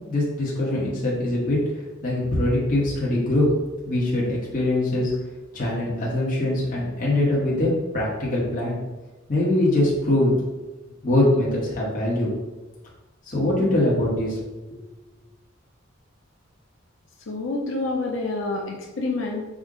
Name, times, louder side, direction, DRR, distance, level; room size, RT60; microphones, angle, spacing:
voice 1, 0.1-1.6 2.0-3.5 3.8-5.1 5.5-8.8 9.3-10.3 11.0-12.3 13.3-14.4 14.7-14.8, left 1 dB, 40° left, -6 dB, 0.9 m, -22 dB
voice 2, 17.3-19.5, left 2 dB, 65° left, 0 dB, 0.5 m, -28 dB
5.1 x 2.1 x 3.7 m, 1.1 s
head